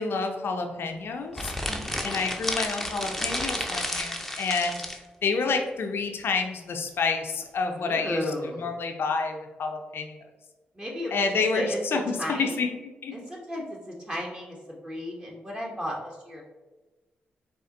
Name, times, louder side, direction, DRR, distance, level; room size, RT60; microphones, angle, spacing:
voice 1, 0.0-1.5 2.0-4.8 5.2-8.2 8.6-10.2 11.1-12.0 12.4-12.7 13.0-13.1, left 4 dB, 60° left, 4 dB, 0.6 m, -28 dB
sound 1, 1.3-5.0, left 1 dB, 5° left, 0.7 m, -31 dB
voice 2, 1.6-2.0 7.8-8.7 10.7-12.8 13.1-14.6 14.8-16.4, equal, 25° right, -2 dB, 1.1 m, -34 dB
4.3 x 2.5 x 3.7 m, 1.2 s
supercardioid pair, 45°, 4 cm